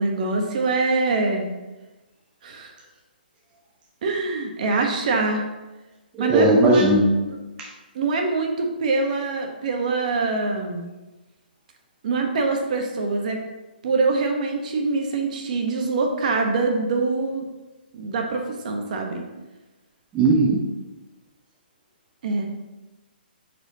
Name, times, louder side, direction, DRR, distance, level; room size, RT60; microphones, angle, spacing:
voice 1, 0.0-1.4 2.4-2.7 4.0-5.4 6.2-7.4 7.9-10.9 12.0-13.4 13.8-17.5 17.9-19.2 22.2-22.5, right 3 dB, 45° right, 3 dB, 1.0 m, -24 dB
voice 2, 6.1-7.1 20.1-20.6, right 2 dB, 15° right, -2 dB, 0.7 m, -17 dB
7.8 x 4.4 x 2.8 m, 1.1 s
hypercardioid pair, 150°, 5 cm